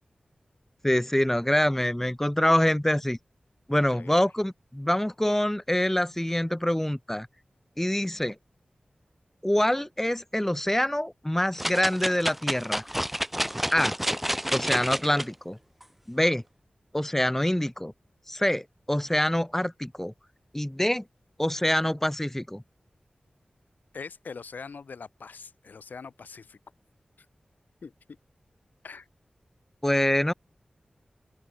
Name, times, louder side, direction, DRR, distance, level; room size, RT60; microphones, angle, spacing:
voice 1, 0.8-3.2 3.7-7.3 7.8-8.4 9.4-12.8 13.7-14.0 14.5-15.6 16.1-16.4 16.9-17.9 18.3-20.1 20.5-21.0 21.4-22.6 29.8-30.3, left 1 dB, 10° left, 1.9 m, -25 dB
voice 2, 3.7-4.3 23.9-26.6 27.8-27.9 28.8-29.1, left 5 dB, 90° left, 5.8 m, -42 dB
sound 1, 11.6-15.3 15.8-15.9, equal, 5° right, 3.1 m, -29 dB
open air
cardioid pair, 40°, 3 cm